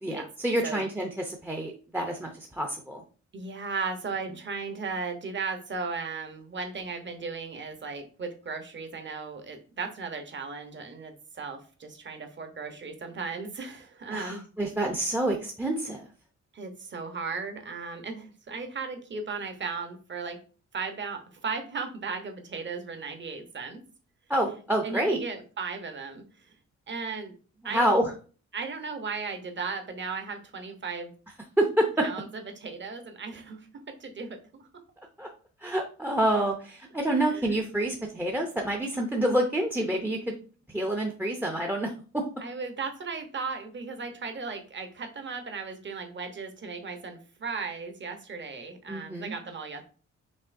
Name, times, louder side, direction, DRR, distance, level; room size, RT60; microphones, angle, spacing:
voice 1, 0.0-3.0 14.1-16.0 24.3-25.2 27.6-28.1 31.6-32.1 35.2-35.3 35.6-40.3 40.7-42.2 48.9-49.4, right 1 dB, 5° right, 1 dB, 0.6 m, -28 dB
voice 2, 3.3-14.4 16.5-20.4 20.7-23.8 24.8-26.5 26.9-27.3 27.6-27.9 28.5-31.1 32.0-34.7 37.1-37.6 42.4-49.8, right 4 dB, 40° right, 6 dB, 0.9 m, -36 dB
5.4 x 3.1 x 2.6 m, 0.38 s
cardioid pair, 100°, 29 cm